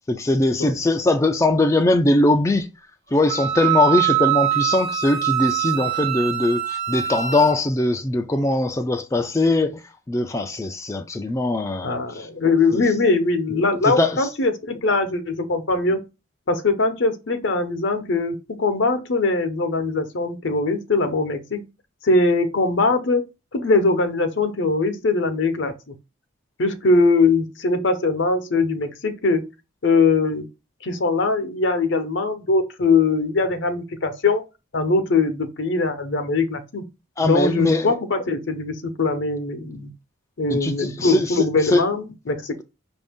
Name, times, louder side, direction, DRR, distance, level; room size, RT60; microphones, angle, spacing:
voice 1, 0.1-2.7 3.1-9.8 10.1-12.3 12.7-12.8 13.8-14.3 37.2-37.9 40.5-41.4 41.6-41.8, left 2 dB, 15° left, 0.3 m, -21 dB
Wind instrument woodwind instrument, 3.3-7.6, right 12 dB, 55° right, 1.3 m, -23 dB
voice 2, 11.8-16.0 16.5-21.7 22.0-23.2 23.5-25.9 26.6-29.5 29.8-30.5 30.8-34.4 34.7-36.8 37.2-39.9 40.4-42.6, left 3 dB, 65° left, 0.8 m, -21 dB
5.7 x 2.6 x 3.5 m
head